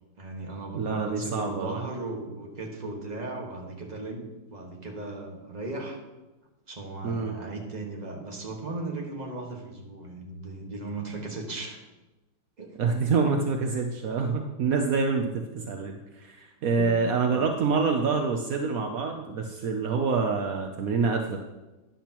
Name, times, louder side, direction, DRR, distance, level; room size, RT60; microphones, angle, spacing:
voice 1, 0.2-6.0 6.7-11.8 12.6-12.7 16.8-16.9 17.3-17.5, right 2 dB, 20° right, 0 dB, 1.4 m, -37 dB
voice 2, 0.7-1.8 7.0-7.3 12.8-21.4, right 4 dB, 70° right, 4 dB, 0.8 m, -26 dB
13.0 x 10.0 x 3.0 m, 1.1 s
omnidirectional pair, 2.4 m